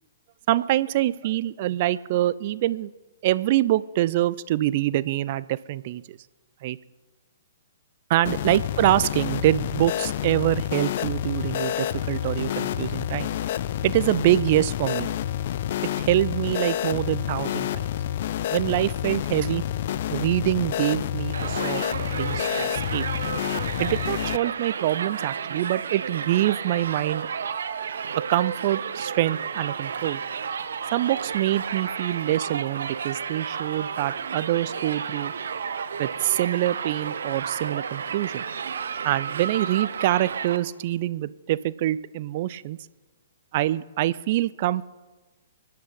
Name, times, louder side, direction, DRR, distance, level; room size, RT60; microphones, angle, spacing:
voice 1, 0.5-2.9 3.2-6.2 6.6-6.8 8.1-13.3 13.8-15.1 16.0-17.9 18.5-19.6 20.1-21.8 22.1-23.0 23.8-27.3 28.1-30.2 30.9-35.3 36.0-38.5 39.0-42.8 43.5-44.8, right 14 dB, 40° right, 18 dB, 0.5 m, -25 dB
sound 1, 8.2-24.4, left 11 dB, 50° left, 0.5 m, -29 dB
Crowd, 21.3-40.6, right 6 dB, 60° right, 1.0 m, -32 dB
24.0 x 10.5 x 5.4 m, 1.2 s
figure-of-eight pair, 120°, 0 cm